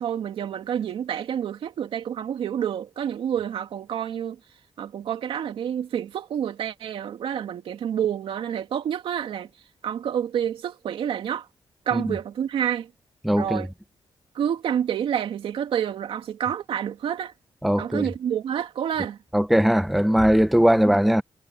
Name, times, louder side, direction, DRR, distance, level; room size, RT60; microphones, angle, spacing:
voice 1, 0.0-4.4 4.8-9.5 9.8-11.5 11.9-12.9 13.4-13.7 14.3-17.3 17.8-19.2, right 9 dB, 85° right, 2.5 m, -28 dB
voice 2, 13.2-13.7 17.6-18.1 19.3-21.2, equal, ahead, 0.7 m, -20 dB
wide cardioid pair, 125°, 9 cm